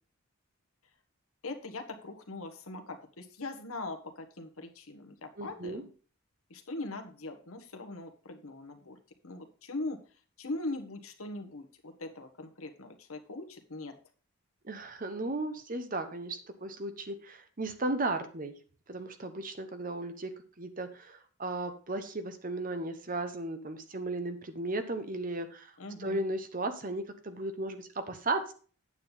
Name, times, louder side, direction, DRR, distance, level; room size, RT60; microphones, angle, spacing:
voice 1, 1.4-5.9 6.5-9.0 9.2-10.0 10.4-14.0 25.8-26.2, left 2 dB, 75° left, 5 dB, 1.4 m, -41 dB
voice 2, 5.4-5.8 14.6-18.5 18.9-20.3 20.6-25.7 26.0-28.5, right 2 dB, 40° right, 8 dB, 1.0 m, -35 dB
8.9 x 7.3 x 4.0 m, 0.40 s
head